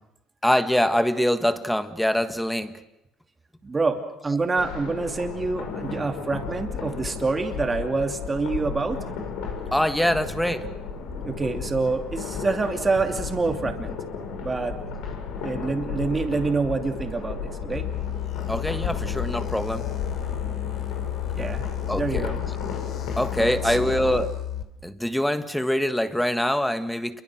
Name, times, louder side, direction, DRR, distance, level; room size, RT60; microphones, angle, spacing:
voice 1, 0.4-2.8 9.7-10.7 18.5-19.9 21.9-22.3 23.2-24.4 24.8-27.2, equal, 5° left, 10 dB, 1.5 m, -24 dB
voice 2, 3.6-9.0 11.0-14.0 14.4-14.7 15.4-17.9 21.3-22.4 23.3-23.9, right 3 dB, 20° right, 4 dB, 2.9 m, -27 dB
sound 1, 4.6-24.2, left 5 dB, 80° left, 6.1 m, -34 dB
sound 2, 17.7-24.6, left 13 dB, 50° left, 2.8 m, -32 dB
28.5 x 23.0 x 6.5 m, 0.87 s
supercardioid pair, 100°, 0 cm